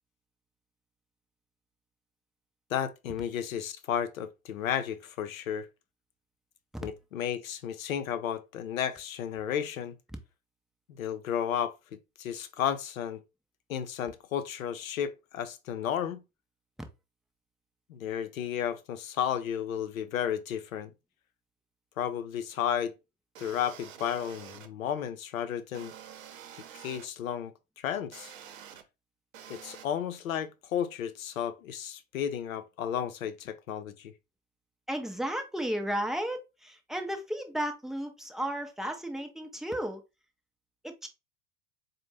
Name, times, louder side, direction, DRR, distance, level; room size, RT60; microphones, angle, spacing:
voice 1, 2.7-5.7 6.8-10.0 10.9-11.7 12.2-13.2 13.7-16.2 17.9-20.9 22.0-22.9 23.4-25.9 26.7-28.3 29.5-34.1, left 9 dB, 75° left, 0.7 m, -33 dB
sound 1, 23.4-24.7 25.7-27.1 28.1-28.8 29.3-29.9, right 9 dB, 70° right, 0.8 m, -47 dB
voice 2, 34.9-40.0 40.8-41.1, equal, ahead, 0.4 m, -34 dB
4.1 x 2.2 x 3.2 m
hypercardioid pair, 90°, 41 cm